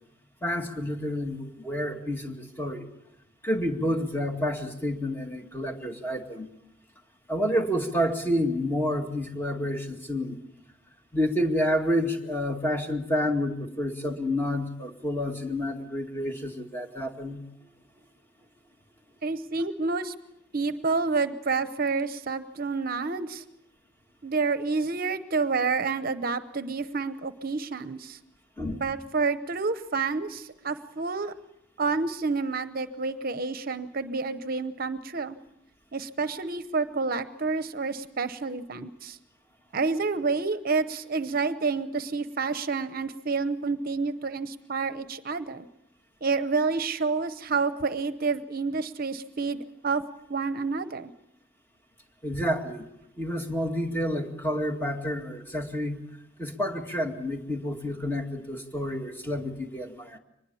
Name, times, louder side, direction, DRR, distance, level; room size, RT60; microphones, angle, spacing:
voice 1, 0.4-2.9 3.4-6.5 7.3-10.4 11.1-17.4 28.6-28.8 52.2-52.9 53.2-56.0 56.4-60.2, equal, 10° left, 3 dB, 2.2 m, -29 dB
voice 2, 19.2-20.1 20.5-23.4 24.2-28.2 28.7-31.3 31.8-35.4 35.9-39.2 39.7-45.7 46.2-50.0 50.3-51.1, right 4 dB, 50° right, 11 dB, 0.8 m, -29 dB
24.0 x 20.5 x 7.0 m, 0.82 s
head